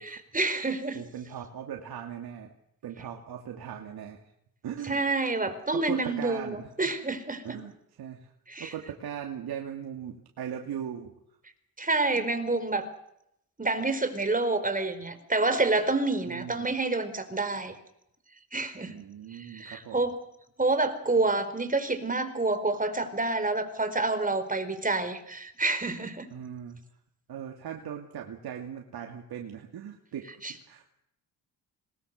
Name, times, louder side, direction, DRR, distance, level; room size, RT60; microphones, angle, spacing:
voice 1, 0.3-1.0 4.9-7.6 8.5-8.7 11.8-12.9 13.6-17.7 18.5-18.9 19.3-20.2 20.6-26.3 30.4-30.5, right 3 dB, 20° right, 9 dB, 4.5 m, -28 dB
voice 2, 0.9-2.5 2.8-4.3 4.6-5.0 5.5-6.7 7.4-11.1 12.1-12.3 16.2-16.7 18.9-20.1 26.3-26.8 27.3-30.9, right 9 dB, 65° right, 2 dB, 2.9 m, -39 dB
26.0 x 20.5 x 6.8 m, 0.76 s
cardioid pair, 85°, 41 cm